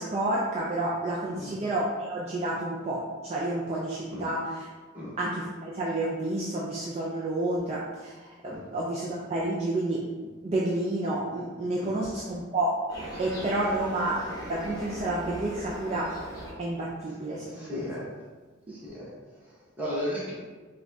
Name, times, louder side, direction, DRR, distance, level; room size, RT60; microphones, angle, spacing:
voice 1, 0.0-4.6 5.2-8.1 8.4-12.7 13.2-16.1 16.6-17.8, right 1 dB, 30° right, -6 dB, 0.4 m, -30 dB
sound 1, 12.9-16.5, equal, 20° left, 1.1 m, -39 dB
voice 2, 17.5-18.1 18.7-20.3, left 1 dB, 10° right, -8 dB, 1.0 m, -35 dB
4.9 x 2.2 x 2.6 m, 1.4 s
head